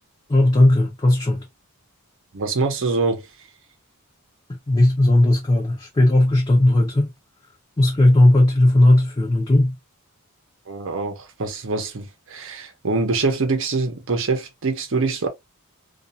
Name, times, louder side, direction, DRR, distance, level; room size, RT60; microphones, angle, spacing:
voice 1, 0.3-1.5 4.5-7.1 7.8-9.7, left 1 dB, 20° left, 0.5 m, -16 dB
voice 2, 2.3-3.2 10.7-15.3, right 3 dB, 60° right, 0.7 m, -24 dB
2.4 x 2.3 x 2.6 m
head